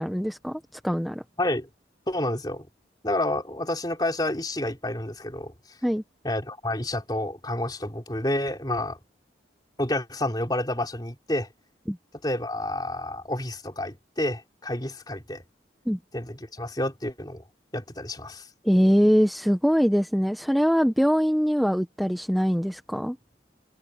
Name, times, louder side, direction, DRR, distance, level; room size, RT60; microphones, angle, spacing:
voice 1, 0.0-1.2 5.8-6.0 11.9-12.0 15.9-16.0 18.6-23.2, equal, ahead, 0.8 m, -23 dB
voice 2, 1.4-1.7 2.1-2.7 3.0-5.5 6.2-9.0 9.8-11.5 12.2-15.4 16.1-17.4 17.7-18.5, left 1 dB, 20° left, 3.6 m, -29 dB
head